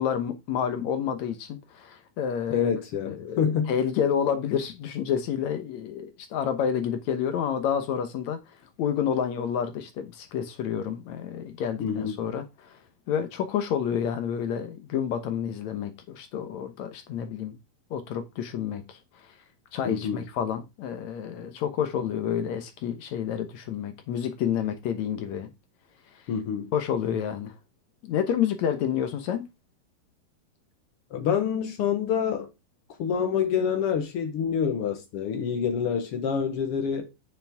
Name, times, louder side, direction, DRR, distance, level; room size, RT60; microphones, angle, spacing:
voice 1, 0.0-2.7 3.1-8.4 8.8-12.8 13.1-17.6 17.9-19.0 19.7-25.5 26.7-27.5 28.0-29.4, left 8 dB, 70° left, 1.9 m, -29 dB
voice 2, 2.5-3.7 11.8-12.2 19.8-20.2 26.3-26.7 31.1-32.5 33.0-37.1, left 7 dB, 90° left, 1.2 m, -27 dB
8.9 x 7.0 x 3.6 m
omnidirectional pair, 4.4 m